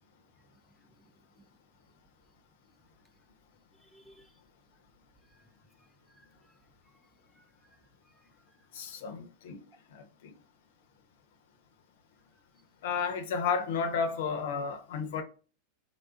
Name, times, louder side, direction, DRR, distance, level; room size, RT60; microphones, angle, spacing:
voice 1, 3.8-4.4 5.3-5.4 6.1-6.6 7.3-8.6, equal, 5° right, 0.4 m, -63 dB
voice 2, 8.7-9.6 9.9-10.3 12.8-15.2, left 5 dB, 65° left, 0.6 m, -32 dB
3.4 x 2.3 x 2.5 m
hypercardioid pair, 95°, 0 cm